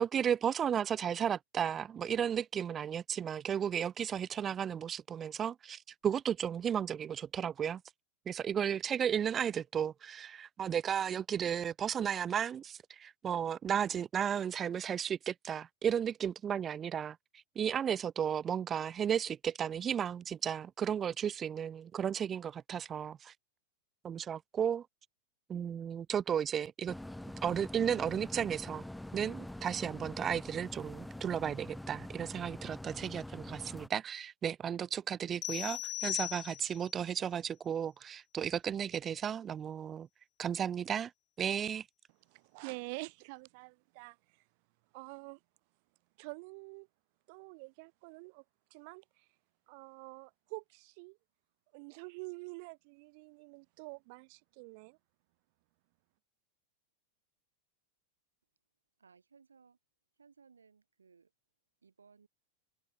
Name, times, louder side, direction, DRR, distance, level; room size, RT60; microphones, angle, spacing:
voice 1, 0.0-7.8 8.3-17.2 17.6-23.3 24.0-24.9 25.5-26.9 27.4-28.8 29.1-40.1 40.4-41.1 41.4-41.8, right 8 dB, 25° right, 0.4 m, -34 dB
sound 1, 26.9-33.9, left 1 dB, 5° left, 1.3 m, -45 dB
sound 2, 35.4-36.9, left 15 dB, 35° left, 0.5 m, -38 dB
voice 2, 42.3-44.2 44.9-45.4 46.2-46.9 47.3-48.4 48.7-49.0 49.7-51.2 51.7-55.0, right 32 dB, 45° right, 1.4 m, -47 dB
voice 3, 59.0-59.8 60.1-61.3 61.8-62.3, right 5 dB, 75° right, 6.4 m, -62 dB
figure-of-eight pair, 90°, 0 cm